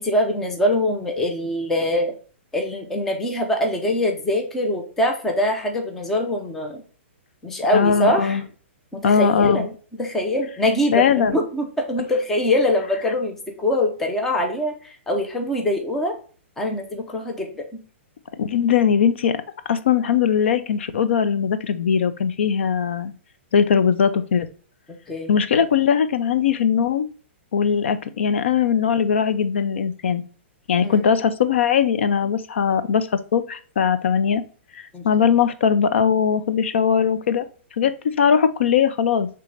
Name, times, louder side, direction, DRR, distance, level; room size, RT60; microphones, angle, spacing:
voice 1, 0.0-2.1 2.5-6.8 7.4-8.4 8.9-9.7 10.0-16.1 16.6-17.7 25.1-25.3 30.8-31.0 34.9-35.3, left 1 dB, 5° left, 2 dB, 0.4 m, -23 dB
voice 2, 7.7-8.4 9.0-9.6 10.9-11.4 18.4-19.4 19.7-23.1 23.5-24.5 25.3-27.1 27.5-30.2 30.7-34.4 34.7-37.5 37.8-39.3, left 7 dB, 65° left, 12 dB, 0.5 m, -20 dB
5.1 x 3.3 x 3.1 m, 0.41 s
hypercardioid pair, 175°, 7 cm